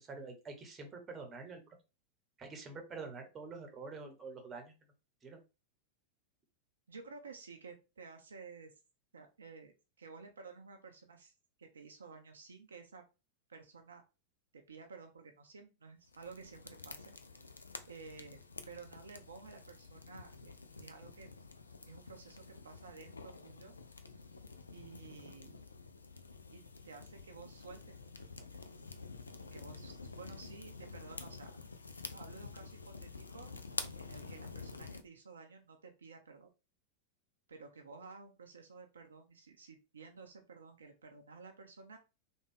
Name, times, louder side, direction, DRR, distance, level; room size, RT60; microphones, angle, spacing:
voice 1, 0.0-1.8 2.4-4.7 5.2-5.4, right 4 dB, 20° right, 4 dB, 0.9 m, -47 dB
voice 2, 6.9-8.7 9.1-11.3 11.6-13.0 13.5-14.0 14.5-17.1 17.8-18.4 18.6-21.3 21.8-23.7 24.7-25.6 26.5-28.0 28.4-28.6 29.4-31.6 32.1-33.6 34.0-36.5 37.5-42.0, right 4 dB, 70° right, 4 dB, 0.5 m, -53 dB
sound 1, 16.1-35.0, left 4 dB, 75° left, 0.3 m, -49 dB
3.4 x 2.3 x 3.3 m, 0.28 s
figure-of-eight pair, 90°, 0 cm